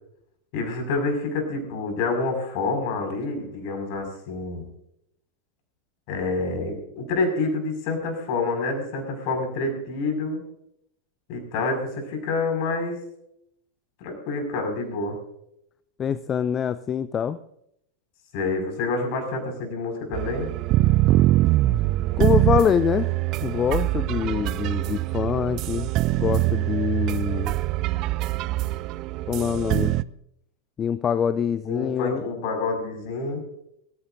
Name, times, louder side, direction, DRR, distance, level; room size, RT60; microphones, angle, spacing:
voice 1, 0.5-4.7 6.1-10.4 11.3-13.0 14.0-15.2 18.3-20.5 31.6-33.4, left 3 dB, 50° left, 4 dB, 5.4 m, -27 dB
voice 2, 16.0-17.4 22.2-23.1 23.4-25.9 26.2-27.6 29.3-30.0 30.8-32.2, left 8 dB, 25° left, 15 dB, 0.5 m, -25 dB
sound 1, 20.1-30.0, right 17 dB, 40° right, 0.4 m, -23 dB
24.0 x 15.5 x 2.6 m, 0.76 s
figure-of-eight pair, 90°, 0 cm